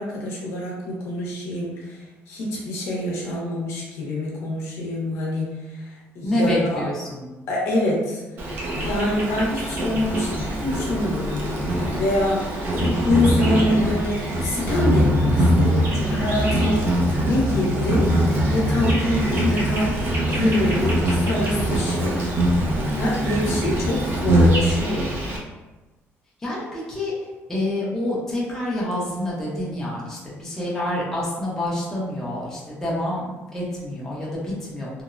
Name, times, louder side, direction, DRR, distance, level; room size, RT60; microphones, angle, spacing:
voice 1, 0.0-6.8 7.5-8.2 8.8-11.4 12.0-16.9 17.2-18.1 18.5-22.2 22.9-25.2, left 1 dB, 65° left, -3 dB, 0.7 m, -25 dB
voice 2, 6.2-7.3 26.4-27.1 27.5-35.0, left 1 dB, 10° left, -7 dB, 0.6 m, -27 dB
Insect, 8.4-25.4, equal, 45° right, 0.5 m, -22 dB
2.9 x 2.0 x 2.4 m, 1.1 s
cardioid pair, 165°, 5 cm